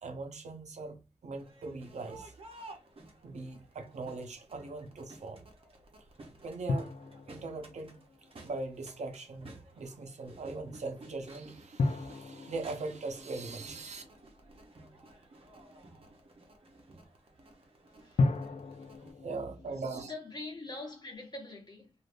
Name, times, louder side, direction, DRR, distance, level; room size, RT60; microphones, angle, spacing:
voice 1, 0.0-2.3 3.2-5.4 6.4-6.9 7.3-8.0 8.4-14.0 19.2-20.1, right 3 dB, 80° right, 0.7 m, -40 dB
Crowd, 1.4-19.1, right 2 dB, 55° right, 0.8 m, -55 dB
sound 1, 6.7-8.9 11.8-14.7 18.2-20.1, left 3 dB, 70° left, 0.4 m, -35 dB
voice 2, 20.1-21.9, left 2 dB, 40° left, 1.1 m, -43 dB
3.2 x 2.5 x 2.5 m
wide cardioid pair, 105°, 12 cm